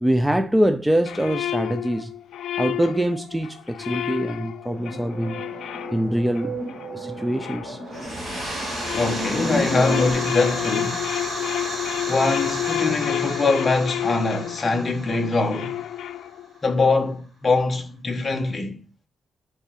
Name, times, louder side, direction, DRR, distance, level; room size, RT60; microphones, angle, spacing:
voice 1, 0.0-2.1 2.6-5.4 5.9-6.6 6.9-7.8, right 1 dB, 5° right, 0.4 m, -24 dB
sound 1, 1.0-8.3 8.6-16.6, left 12 dB, 80° left, 0.4 m, -30 dB
sound 2, 4.7-10.1, right 1 dB, 70° right, 2.6 m, -33 dB
sound 3, 7.9-16.4, right 1 dB, 30° right, 2.2 m, -33 dB
voice 2, 8.9-11.2 12.0-15.8 16.6-18.8, left 3 dB, 20° left, 1.1 m, -23 dB
5.5 x 3.5 x 5.7 m
wide cardioid pair, 160°, 0 cm